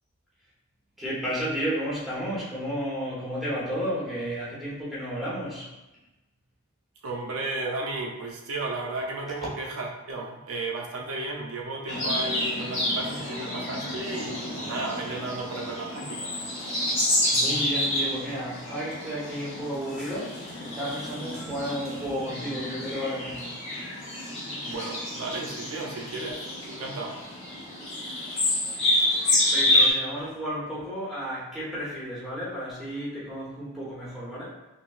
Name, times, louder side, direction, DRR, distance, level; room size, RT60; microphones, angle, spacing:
voice 1, 1.0-5.7 17.0-20.3 20.6-23.5 29.4-34.5, equal, ahead, -9 dB, 0.9 m, -32 dB
voice 2, 7.0-16.3 24.6-27.2, right 2 dB, 75° right, -1 dB, 0.5 m, -34 dB
sound 1, 11.9-29.9, left 1 dB, 55° left, 1.1 m, -28 dB
3.6 x 2.6 x 2.4 m, 1.0 s
head